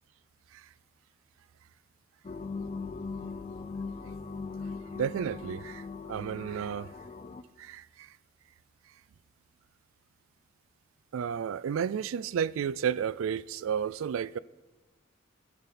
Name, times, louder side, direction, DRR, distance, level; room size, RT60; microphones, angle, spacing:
sound 1, 2.2-7.4, left 4 dB, 30° left, 0.3 m, -39 dB
voice 1, 4.9-6.9 7.6-8.1 11.1-14.4, right 8 dB, 75° right, 0.3 m, -32 dB
13.5 x 10.5 x 4.1 m
head